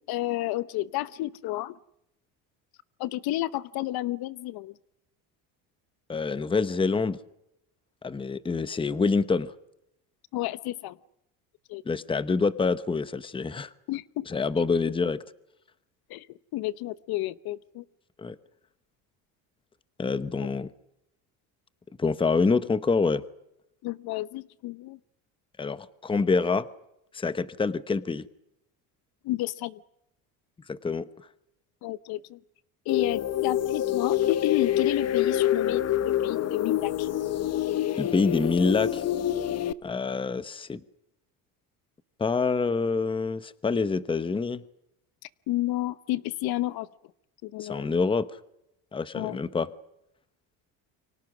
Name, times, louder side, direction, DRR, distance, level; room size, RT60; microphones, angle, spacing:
voice 1, 0.1-1.8 3.0-4.7 10.3-11.0 11.7-11.8 13.9-14.2 16.1-16.3 16.5-17.8 20.4-20.5 23.8-25.0 29.2-29.8 31.8-32.4 32.9-37.1 45.5-46.9 47.4-47.9 49.1-49.4, left 16 dB, 65° left, 16 dB, 1.0 m, -31 dB
voice 2, 6.1-7.2 8.0-9.5 11.8-13.7 14.3-15.2 18.2-18.4 20.0-20.7 22.0-23.2 25.6-26.7 27.1-28.3 30.7-31.1 38.0-39.0 39.8-40.8 42.2-44.6 47.6-48.3 48.9-49.7, left 4 dB, 15° left, 14 dB, 0.9 m, -26 dB
sound 1, 32.9-39.7, left 11 dB, 40° left, 0.9 m, -26 dB
29.0 x 24.5 x 6.2 m, 0.82 s
cardioid pair, 120°, 40 cm